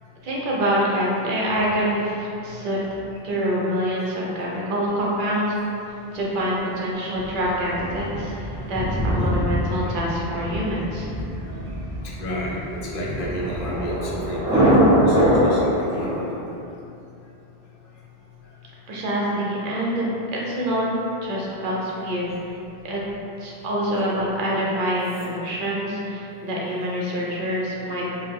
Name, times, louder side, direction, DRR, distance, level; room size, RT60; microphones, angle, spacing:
voice 1, 0.2-3.0 3.2-5.5 6.1-11.1 18.9-20.9 21.2-22.3 22.8-23.0 23.4-28.1, equal, 60° right, -5 dB, 0.6 m, -26 dB
voice 2, 3.8-4.6 9.3-9.4 11.4-11.5 12.2-16.6, equal, 60° left, -5 dB, 0.7 m, -32 dB
Thunder, 7.2-16.2, equal, 5° right, 0.3 m, -23 dB
2.3 x 2.0 x 3.5 m, 2.7 s
omnidirectional pair, 1.1 m